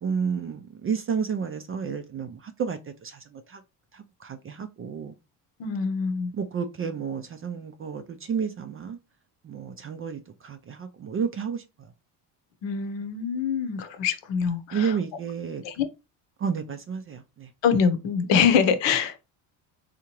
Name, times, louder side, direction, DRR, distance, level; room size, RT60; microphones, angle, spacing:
voice 1, 0.0-3.6 3.9-5.1 6.3-9.0 9.4-11.9 14.7-15.6 16.4-17.5, right 6 dB, 30° right, 0.4 m, -31 dB
voice 2, 5.6-6.3 12.6-14.9 15.6-15.8 17.6-19.2, left 6 dB, 65° left, 0.8 m, -24 dB
3.6 x 2.8 x 2.9 m
supercardioid pair, 90°, 48 cm